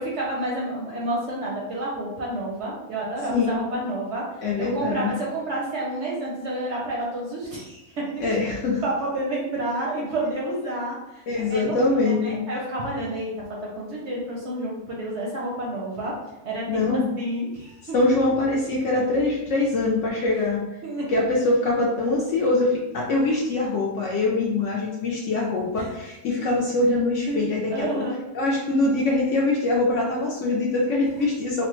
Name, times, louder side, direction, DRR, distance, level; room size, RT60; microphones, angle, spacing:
voice 1, 0.0-4.2 4.6-8.3 8.8-11.2 11.5-11.7 12.0-13.4 13.8-16.1 16.4-17.9 20.8-21.0 25.8-25.9 27.3-27.4 27.7-28.2, right 1 dB, 60° right, -4 dB, 0.8 m, -29 dB
voice 2, 3.3-3.6 4.4-5.1 8.2-8.8 11.3-12.5 16.7-17.1 17.9-20.6 21.1-28.0 28.3-31.7, left 2 dB, 70° left, -3 dB, 0.7 m, -23 dB
3.2 x 2.0 x 3.0 m, 0.96 s
omnidirectional pair, 1.6 m